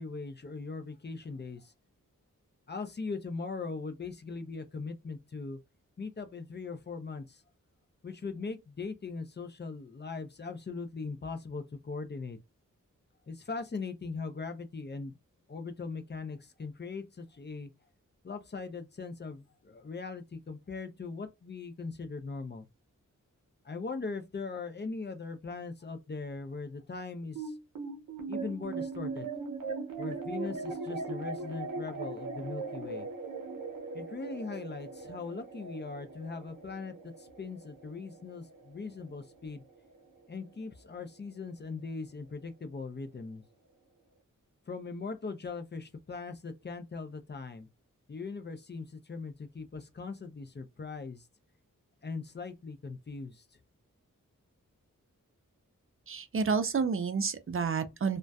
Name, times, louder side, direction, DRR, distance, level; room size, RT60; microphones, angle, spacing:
voice 1, 0.0-1.7 2.7-5.6 6.0-7.4 8.0-12.4 13.3-15.1 15.5-17.7 18.2-22.7 23.6-27.5 28.3-29.3 30.0-33.1 33.9-39.6 40.3-43.4 44.7-47.7 48.1-51.2 52.0-53.4, left 4 dB, 35° left, 0.5 m, -40 dB
sound 1, 27.4-40.0, right 4 dB, 90° right, 0.6 m, -40 dB
voice 2, 56.1-58.2, right 5 dB, 40° right, 0.5 m, -30 dB
2.5 x 2.2 x 2.2 m
cardioid pair, 50°, 32 cm